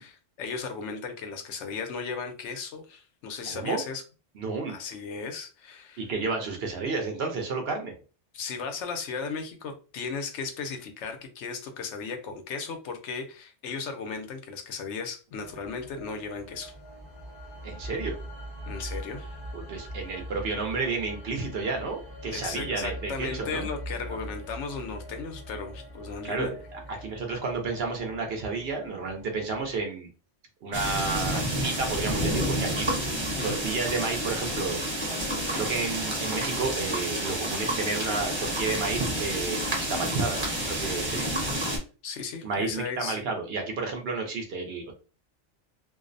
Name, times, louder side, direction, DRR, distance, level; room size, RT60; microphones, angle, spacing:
voice 1, 0.0-4.0 4.7-6.0 8.3-16.7 18.7-19.3 22.3-26.5 26.9-27.0 33.4-33.6 42.0-43.2, left 5 dB, 80° left, 6 dB, 0.9 m, -36 dB
voice 2, 3.5-3.8 4.4-4.7 6.0-7.9 17.6-18.1 19.5-23.7 26.2-26.6 27.0-30.1 30.6-32.9 33.4-34.8 35.0-41.3 42.4-44.9, right 4 dB, 65° right, 3 dB, 0.8 m, -31 dB
sound 1, 15.3-29.8, equal, 25° left, 0.6 m, -42 dB
sound 2, 30.7-41.8, right 1 dB, 25° right, 0.8 m, -29 dB
2.5 x 2.0 x 2.5 m, 0.35 s
omnidirectional pair, 1.2 m